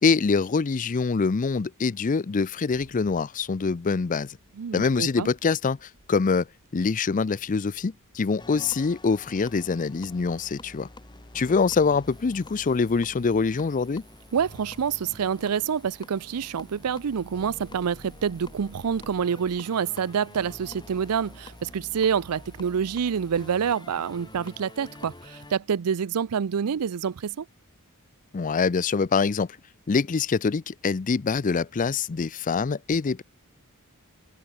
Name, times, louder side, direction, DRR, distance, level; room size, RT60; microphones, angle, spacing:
voice 1, 0.0-4.4 4.7-6.5 6.7-10.9 11.3-14.0 28.3-29.5 29.9-33.2, left 4 dB, 35° left, 0.5 m, -24 dB
sound 1, 2.5-9.3, right 1 dB, 65° right, 7.7 m, -61 dB
voice 2, 4.6-5.3 14.3-27.5, right 7 dB, 85° right, 0.5 m, -27 dB
sound 2, 8.4-25.6, left 1 dB, 20° left, 1.7 m, -47 dB
sound 3, 12.0-25.6, right 3 dB, 20° right, 4.1 m, -59 dB
head